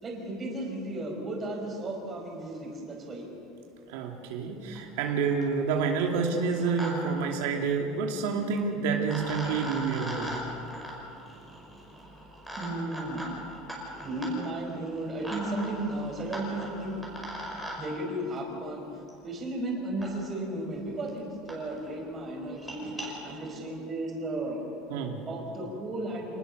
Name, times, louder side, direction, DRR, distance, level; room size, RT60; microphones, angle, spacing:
voice 1, 0.0-3.3 12.6-13.2 13.9-17.0 17.8-24.6 25.3-26.4, right 1 dB, 25° right, 0 dB, 5.0 m, -34 dB
voice 2, 3.9-10.3 24.9-25.2, right 5 dB, 85° right, 1 dB, 2.5 m, -28 dB
sound 1, 4.7-4.8 5.1-5.5 6.4-6.9 7.2-7.3 8.6-8.7 9.1-17.8 19.1-19.2 20.0-20.1 20.8-20.9 21.1-21.2 21.5-21.6 21.9-22.1 22.5-23.1, equal, ahead, 5.2 m, -40 dB
26.5 x 19.5 x 6.6 m, 2.7 s
cardioid pair, 155°, 0 cm